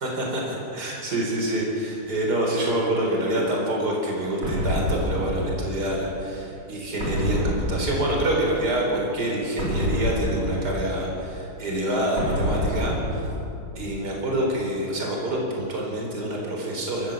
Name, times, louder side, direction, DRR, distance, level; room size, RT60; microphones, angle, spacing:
voice 1, 0.0-13.3 13.7-17.1, right 1 dB, 50° right, -1 dB, 4.7 m, -26 dB
sound 1, 4.4-6.2 7.0-8.7 9.6-11.4 12.2-13.9, equal, 80° right, 4.5 m, -28 dB
29.5 x 14.5 x 7.4 m, 2.7 s
omnidirectional pair, 2.2 m